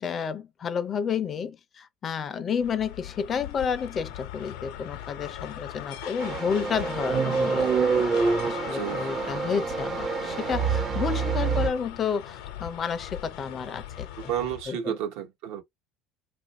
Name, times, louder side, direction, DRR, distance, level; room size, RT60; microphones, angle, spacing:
voice 1, 0.0-7.7 8.1-14.1 14.7-14.9, left 7 dB, 30° left, 0.5 m, -31 dB
sound 1, 2.6-14.7, left 11 dB, 85° left, 0.8 m, -39 dB
sound 2, 6.2-11.7, right 5 dB, 35° right, 0.6 m, -26 dB
voice 2, 8.6-9.1 14.2-15.6, right 10 dB, 75° right, 1.0 m, -32 dB
2.9 x 2.5 x 4.0 m
cardioid pair, 135°, 0 cm